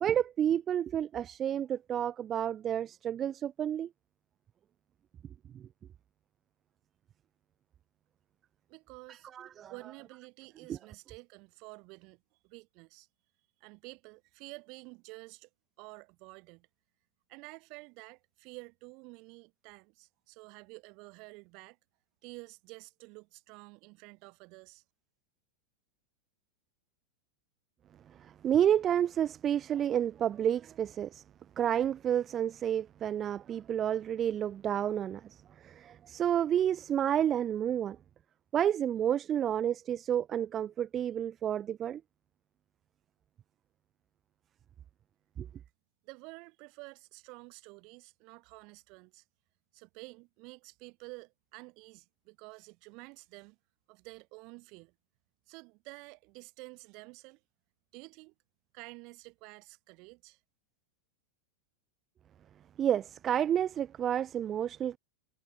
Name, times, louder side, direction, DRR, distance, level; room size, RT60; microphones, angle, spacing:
voice 1, 0.0-3.9 5.5-5.6 9.1-9.7 10.7-10.8 28.2-31.2 31.6-38.0 38.5-42.0 45.4-45.5 62.8-65.0, right 10 dB, 25° right, 0.4 m, -30 dB
voice 2, 8.7-9.3 9.7-13.1 13.6-15.5 15.8-16.7 17.3-21.8 22.2-24.8 46.0-49.2 49.7-53.6 53.9-54.9 55.5-57.4 57.9-58.3 58.7-60.4, right 28 dB, 45° right, 4.0 m, -50 dB
figure-of-eight pair, 90°, 0 cm